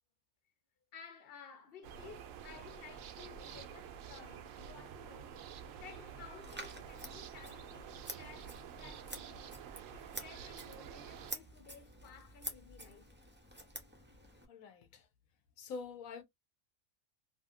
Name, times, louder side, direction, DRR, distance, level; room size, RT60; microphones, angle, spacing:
voice 1, 0.9-5.4 5.7-7.9 8.1-9.6 9.9-13.1, left 6 dB, 50° left, 0.9 m, -55 dB
sound 1, 1.8-11.3, right 8 dB, 75° right, 0.9 m, -49 dB
Scissors, 6.4-14.5, right 1 dB, 15° right, 0.3 m, -49 dB
voice 2, 14.5-15.1 15.6-16.2, left 4 dB, 85° left, 1.1 m, -46 dB
2.8 x 2.7 x 2.4 m
omnidirectional pair, 1.4 m